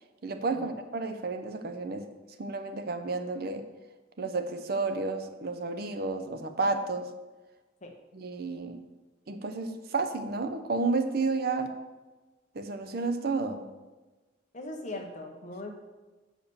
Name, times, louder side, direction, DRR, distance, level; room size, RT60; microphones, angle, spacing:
voice 1, 0.2-2.1 2.4-3.6 4.2-7.1 8.1-8.8 9.3-11.7 12.5-13.6, right 3 dB, 55° right, 8 dB, 0.6 m, -31 dB
voice 2, 14.5-15.7, left 2 dB, 40° left, 3 dB, 1.1 m, -39 dB
6.7 x 5.0 x 6.8 m, 1.2 s
head